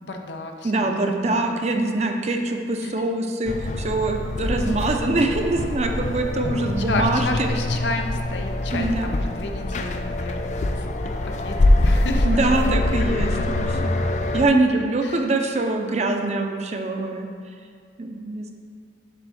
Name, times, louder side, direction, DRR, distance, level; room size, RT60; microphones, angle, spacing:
voice 1, 0.0-1.7 2.8-3.0 4.9-5.0 6.8-13.8 15.0-15.3, left 2 dB, 85° left, 3 dB, 0.7 m, -32 dB
voice 2, 0.6-7.5 8.7-9.2 12.3-13.9 14.3-17.3 18.0-18.5, right 2 dB, 40° right, 4 dB, 0.6 m, -24 dB
sound 1, 3.5-14.5, left 1 dB, 40° left, 0.4 m, -24 dB
7.5 x 3.5 x 6.3 m, 2.2 s
head